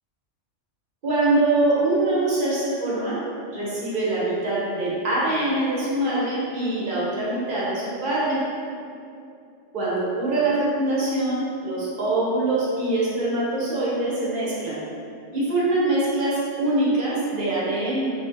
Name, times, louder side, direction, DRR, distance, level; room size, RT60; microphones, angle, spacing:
voice 1, 1.0-3.2 3.5-8.4 9.7-14.8 15.3-18.1, right 2 dB, 55° right, -7 dB, 0.6 m, -23 dB
2.5 x 2.1 x 2.5 m, 2.5 s
omnidirectional pair, 1.3 m